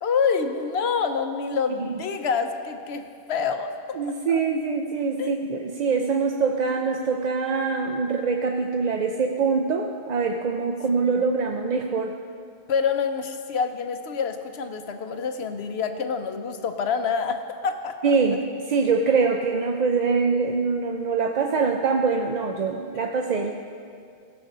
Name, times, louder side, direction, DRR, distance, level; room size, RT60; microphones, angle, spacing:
voice 1, 0.0-3.0 3.3-4.0 4.3-4.4 5.2-5.3 11.0-11.1 12.7-18.0, left 5 dB, 85° left, 7 dB, 1.1 m, -27 dB
voice 2, 3.9-12.1 18.0-23.5, right 4 dB, 50° right, 3 dB, 0.6 m, -24 dB
16.5 x 6.8 x 5.4 m, 2.3 s
omnidirectional pair, 1.0 m